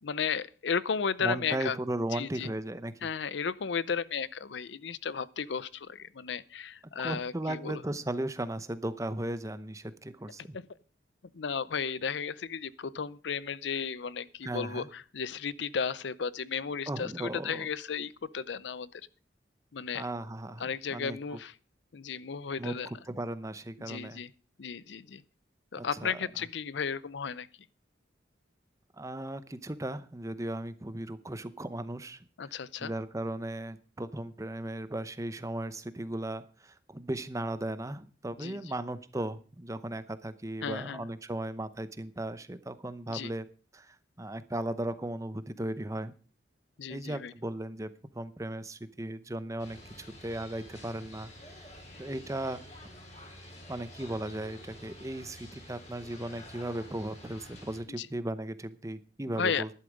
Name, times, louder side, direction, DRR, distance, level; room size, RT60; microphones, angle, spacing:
voice 1, 0.0-1.8 2.1-2.5 3.0-7.8 10.5-10.6 11.3-19.0 19.7-20.0 20.6-21.5 21.9-22.9 23.8-24.3 24.6-25.2 25.7-27.5 32.4-32.9 38.4-38.6 40.6-41.0 43.1-43.3 46.8-47.3 58.0-58.1 59.4-59.6, left 6 dB, 70° left, 0.5 m, -34 dB
voice 2, 1.2-2.9 7.0-10.6 14.4-14.9 16.9-17.7 19.9-21.4 22.6-24.2 25.8-26.2 28.9-43.5 43.7-46.1 46.9-51.3 51.6-51.7 52.0-52.6 53.7-59.7, right 1 dB, 15° right, 0.7 m, -36 dB
sound 1, 49.6-57.8, left 1 dB, 35° left, 3.9 m, -49 dB
11.5 x 11.0 x 5.1 m
head